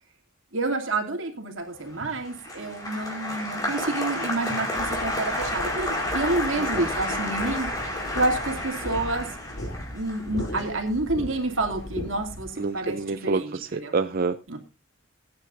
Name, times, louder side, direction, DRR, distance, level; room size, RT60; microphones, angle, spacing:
voice 1, 0.5-7.7 8.1-9.3 9.9-13.9 14.5-14.6, right 2 dB, 80° right, 2.7 m, -29 dB
Applause, 1.9-12.3 12.5-13.1, left 1 dB, 20° left, 4.5 m, -31 dB
sound 1, 4.8-12.5, equal, 65° left, 3.2 m, -38 dB
voice 2, 6.6-6.9 12.6-14.6, right 4 dB, 50° right, 0.6 m, -28 dB
21.0 x 9.6 x 2.6 m
head